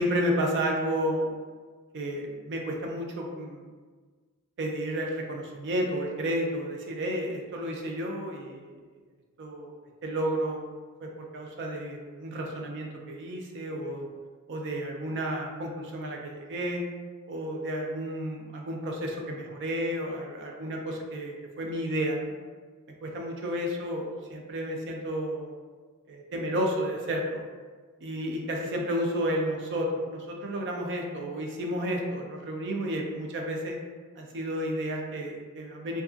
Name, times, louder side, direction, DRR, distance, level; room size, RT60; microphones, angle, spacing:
voice 1, 0.0-1.3 1.9-3.6 4.6-8.8 9.4-9.7 10.0-10.6 11.0-14.1 14.5-16.8 17.3-22.3 23.0-25.5 26.1-27.4 28.0-33.8 34.2-36.0, equal, 55° right, 1 dB, 0.4 m, -31 dB
2.3 x 2.3 x 2.4 m, 1.5 s
head